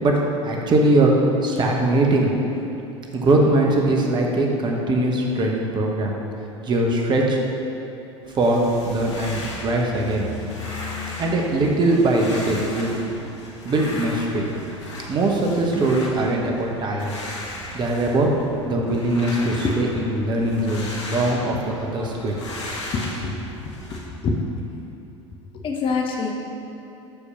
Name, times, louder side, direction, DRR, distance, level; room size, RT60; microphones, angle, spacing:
voice 1, 0.0-2.3 3.1-6.2 6.6-7.4 8.3-10.3 11.2-12.9 13.6-14.5 15.1-17.1 17.7-18.3 18.6-22.3, right 2 dB, 30° right, 0 dB, 1.1 m, -21 dB
sound 1, 8.2-24.0, left 2 dB, 60° left, 1.3 m, -36 dB
voice 2, 22.9-24.5 25.5-26.3, left 4 dB, 35° left, 1 dB, 0.9 m, -26 dB
6.4 x 5.5 x 5.8 m, 3.0 s
figure-of-eight pair, 75°, 16 cm